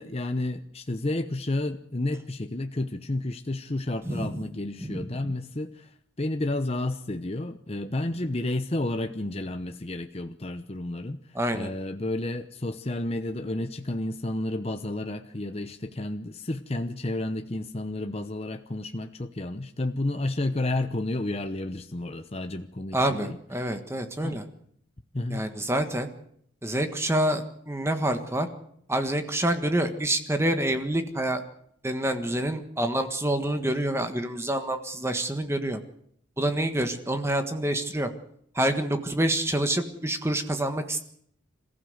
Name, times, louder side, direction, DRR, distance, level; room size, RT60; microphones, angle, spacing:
voice 1, 0.0-23.8 24.2-24.4 25.1-25.5, left 2 dB, 30° left, 7 dB, 0.9 m, -31 dB
voice 2, 4.8-5.3 11.3-11.7 22.9-24.4 25.3-26.1 26.6-28.5 28.9-31.4 31.8-35.8 36.4-38.1 38.5-41.0, right 1 dB, 15° right, 7 dB, 1.5 m, -27 dB
27.0 x 15.0 x 8.0 m, 0.68 s
head